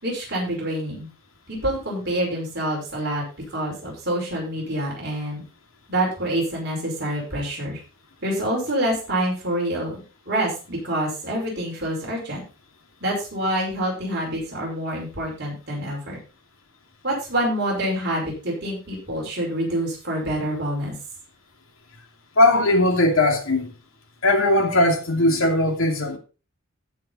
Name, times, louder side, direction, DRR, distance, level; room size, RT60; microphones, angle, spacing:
voice 1, 0.0-1.1 1.5-3.2 3.5-5.4 5.9-7.8 8.2-12.4 13.0-16.2 17.0-21.0, right 1 dB, 50° right, 5.4 m, -26 dB
voice 2, 22.4-23.7 24.2-26.2, left 1 dB, 75° left, 2.6 m, -19 dB
15.5 x 5.9 x 4.3 m
head